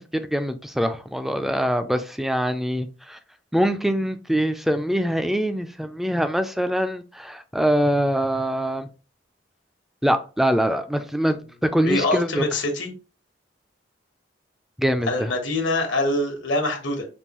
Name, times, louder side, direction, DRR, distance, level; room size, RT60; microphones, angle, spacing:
voice 1, 0.1-3.2 3.5-8.9 10.0-12.4 14.8-15.3, equal, ahead, 0.3 m, -23 dB
voice 2, 11.8-12.9 15.1-17.0, left 2 dB, 75° left, 1.2 m, -24 dB
5.3 x 2.6 x 3.0 m
head